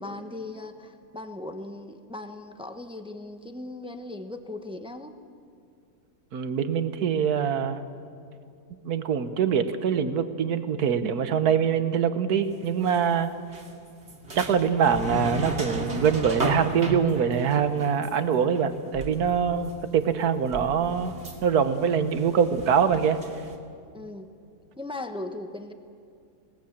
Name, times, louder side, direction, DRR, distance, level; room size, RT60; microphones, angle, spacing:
voice 1, 0.0-5.1 23.9-24.3 24.8-25.7, left 2 dB, 5° right, 7 dB, 0.8 m, -38 dB
voice 2, 6.3-7.8 8.8-13.3 14.3-21.1 21.4-23.2, right 7 dB, 70° right, 10 dB, 1.6 m, -24 dB
sound 1, 12.6-13.0 13.5-19.8 20.1-23.6, right 2 dB, 40° right, 2.5 m, -35 dB
26.0 x 18.5 x 7.3 m, 2.4 s
omnidirectional pair, 1.7 m